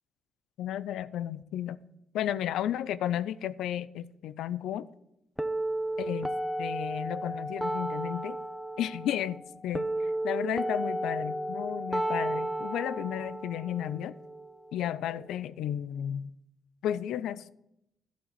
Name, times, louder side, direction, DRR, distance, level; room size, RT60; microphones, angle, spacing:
voice 1, 0.6-1.8 2.1-4.9 6.0-8.4 8.8-9.4 9.6-14.1 14.7-16.3 16.8-17.5, left 11 dB, 80° left, 0.4 m, -33 dB
sound 1, 5.4-15.4, right 1 dB, ahead, 0.5 m, -33 dB
11.5 x 4.0 x 7.4 m
cardioid pair, 90°, 0 cm